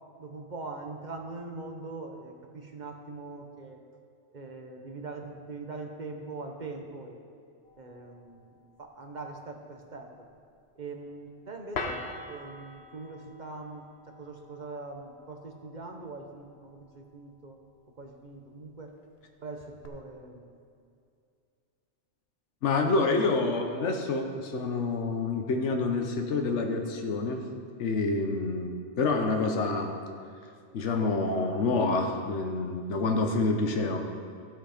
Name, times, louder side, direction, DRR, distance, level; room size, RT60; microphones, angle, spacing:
voice 1, 0.2-3.8 4.3-7.2 7.8-8.5 8.8-10.1 10.8-17.6 18.0-18.9 19.4-20.5, right 3 dB, 45° right, 3 dB, 1.0 m, -42 dB
sound 1, 7.6-19.9, left 3 dB, 65° left, 1.2 m, -46 dB
voice 2, 22.6-27.4 27.8-29.9 30.7-34.1, left 3 dB, 85° left, 3 dB, 1.2 m, -27 dB
15.5 x 5.7 x 5.0 m, 2.4 s
omnidirectional pair, 1.2 m